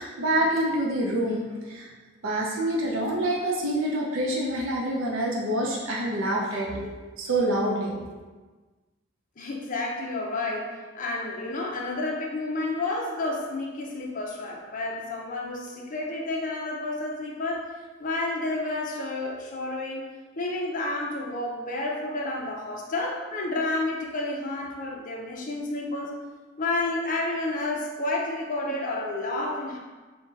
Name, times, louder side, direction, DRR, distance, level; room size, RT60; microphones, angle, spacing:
voice 1, 0.0-1.9 2.2-6.9 7.2-8.0, right 1 dB, 75° right, -2 dB, 0.6 m, -26 dB
voice 2, 9.4-17.7 18.0-20.1 20.4-26.1 26.6-29.8, left 2 dB, 40° left, -1 dB, 0.6 m, -30 dB
3.7 x 2.2 x 3.9 m, 1.3 s
head